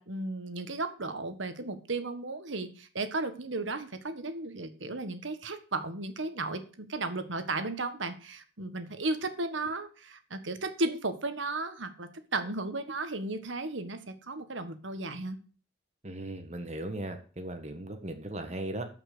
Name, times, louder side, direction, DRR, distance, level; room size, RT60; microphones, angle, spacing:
voice 1, 0.0-15.4, right 2 dB, 75° right, 9 dB, 1.6 m, -35 dB
voice 2, 16.0-18.9, right 1 dB, 35° right, 7 dB, 1.5 m, -37 dB
13.0 x 5.9 x 7.0 m, 0.40 s
head